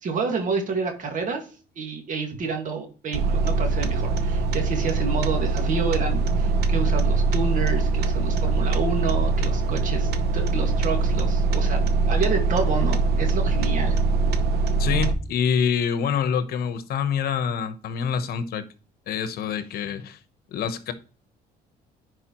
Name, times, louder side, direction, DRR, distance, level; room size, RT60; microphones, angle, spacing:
voice 1, 0.0-1.5 1.8-14.0, right 4 dB, 50° right, 1.9 m, -29 dB
sound 1, 3.1-15.1, right 3 dB, 75° right, 0.9 m, -22 dB
voice 2, 14.8-18.6 19.1-20.2 20.5-20.9, left 7 dB, 65° left, 1.0 m, -26 dB
10.0 x 4.7 x 3.0 m
cardioid pair, 110°, 17 cm